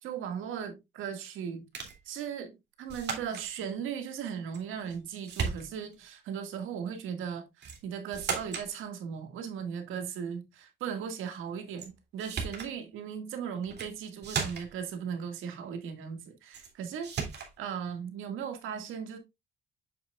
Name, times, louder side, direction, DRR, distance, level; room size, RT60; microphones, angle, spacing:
voice 1, 0.0-1.7 2.1-17.1 17.6-19.2, right 7 dB, 90° right, 2.0 m, -37 dB
sound 1, 1.7-2.0 2.9-3.5 4.5-5.0 5.3-6.0 7.6-7.8 8.1-8.7 11.8-11.9 12.2-12.7 13.6-13.9 14.2-14.8 16.5-16.7 17.0-17.5, right 6 dB, 60° right, 2.7 m, -35 dB
7.8 x 7.1 x 2.4 m
cardioid pair, 90°, 20 cm